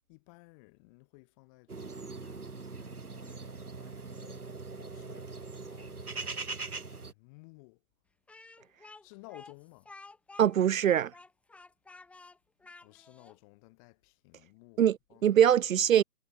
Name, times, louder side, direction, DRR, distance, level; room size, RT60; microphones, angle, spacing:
voice 1, 0.1-3.4 3.8-6.5 6.9-7.8 9.0-9.9 12.8-14.8 15.1-15.2, left 30 dB, 25° left, 2.8 m, -56 dB
sound 1, 1.7-7.1, right 4 dB, 90° right, 6.2 m, -41 dB
Speech, 8.3-13.4, left 3 dB, 5° left, 1.6 m, -52 dB
voice 2, 10.4-11.1 14.8-16.0, right 10 dB, 65° right, 0.5 m, -23 dB
hypercardioid pair, 150°, 44 cm